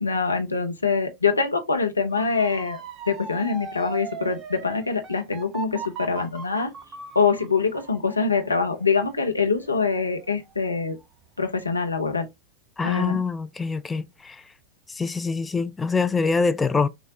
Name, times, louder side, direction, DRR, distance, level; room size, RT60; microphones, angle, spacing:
voice 1, 0.0-2.8 3.1-6.7 7.1-11.0 11.4-12.3 12.8-13.2, left 5 dB, 80° left, 0.7 m, -24 dB
Motor vehicle (road) / Siren, 2.1-11.0 11.4-11.9, right 5 dB, 25° right, 0.8 m, -40 dB
voice 2, 12.8-14.4 14.9-16.9, left 4 dB, 10° left, 0.4 m, -25 dB
6.1 x 2.2 x 2.8 m
figure-of-eight pair, 90°, 0 cm